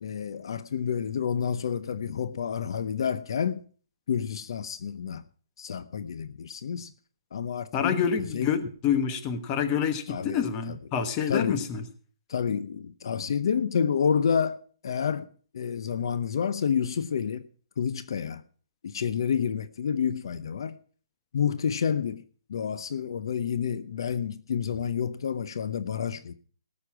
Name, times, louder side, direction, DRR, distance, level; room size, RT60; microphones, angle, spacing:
voice 1, 0.0-3.6 4.1-5.2 5.6-6.9 7.3-8.5 10.1-10.8 11.3-11.7 12.3-14.6 14.8-15.3 15.5-17.4 17.8-18.4 18.8-20.8 21.3-22.2 22.5-26.3, left 7 dB, 60° left, 0.7 m, -29 dB
voice 2, 7.7-11.8, left 7 dB, 20° left, 1.1 m, -27 dB
18.0 x 6.7 x 6.0 m
hypercardioid pair, 165°, 3 cm